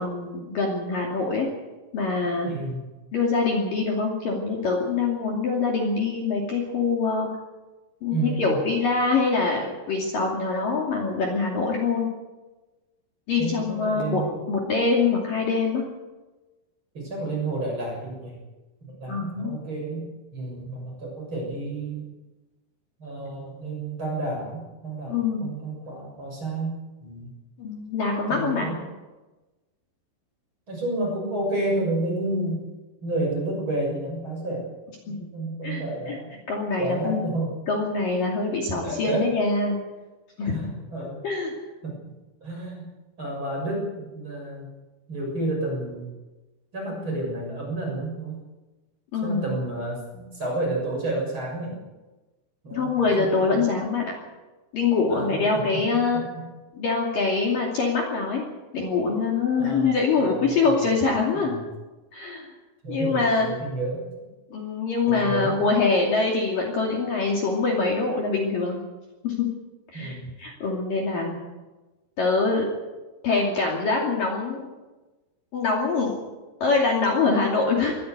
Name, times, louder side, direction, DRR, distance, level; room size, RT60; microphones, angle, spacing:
voice 1, 0.0-1.5 1.9-2.5 3.1-7.3 8.0-12.1 13.3-14.2 14.5-15.8 19.1-19.5 25.1-25.4 27.6-28.7 35.1-35.3 35.6-36.2 36.5-37.2 37.7-39.8 40.4-40.7 41.0-41.5 49.1-49.6 52.7-54.0 54.7-56.2 56.7-58.5 58.7-61.6 62.1-62.5 62.9-63.5 64.5-68.8 69.2-69.5 69.9-71.3 72.2-72.7 73.2-74.7 75.5-76.2 76.6-78.0, left 4 dB, 50° left, -1 dB, 3.8 m, -24 dB
voice 2, 2.4-2.8 8.1-8.5 13.4-14.5 16.9-18.4 18.8-20.0 20.3-22.0 23.0-26.7 27.0-27.3 28.3-28.8 30.7-32.6 33.0-34.7 35.0-36.4 36.8-37.5 38.8-39.3 40.4-41.2 41.8-41.9 42.4-42.8 43.2-44.6 45.1-46.1 46.7-48.4 49.2-51.8 52.6-53.7 55.1-55.4 56.3-56.4 59.6-59.9 60.3-60.9 61.4-61.6 62.8-64.1 65.1-65.6 69.9-70.3, right 2 dB, 25° right, -1 dB, 7.3 m, -30 dB
22.0 x 15.5 x 8.2 m, 1.2 s
omnidirectional pair, 5.8 m